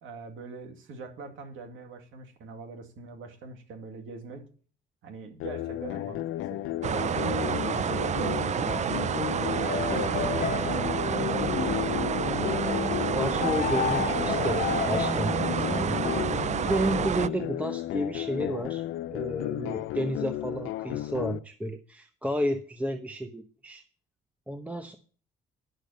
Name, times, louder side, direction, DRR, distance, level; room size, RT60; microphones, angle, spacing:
voice 1, 0.0-4.4 5.0-6.6 6.9-10.9, right 4 dB, 80° right, 5 dB, 2.3 m, -42 dB
sound 1, 5.4-21.4, left 14 dB, 85° left, 0.5 m, -34 dB
sound 2, 6.8-17.3, right 8 dB, 35° right, 0.4 m, -29 dB
sound 3, 9.6-16.2, left 7 dB, 55° left, 1.2 m, -32 dB
voice 2, 12.2-12.7 13.1-16.0 16.3-18.8 19.1-23.8 24.5-24.9, right 1 dB, 5° right, 7 dB, 0.9 m, -32 dB
10.0 x 6.4 x 6.6 m, 0.43 s
cardioid pair, 90°, 20 cm